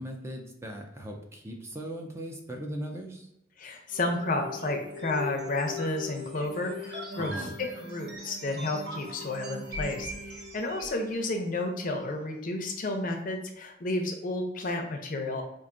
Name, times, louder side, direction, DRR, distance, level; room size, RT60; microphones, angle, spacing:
voice 1, 0.0-3.3 7.2-7.6, right 1 dB, 15° right, 1 dB, 0.4 m, -38 dB
voice 2, 3.6-7.5 7.8-15.4, left 2 dB, 50° left, 4 dB, 0.6 m, -31 dB
sound 1, 3.9-11.1, left 2 dB, 65° right, 0.7 m, -40 dB
4.6 x 2.5 x 2.5 m, 0.86 s
head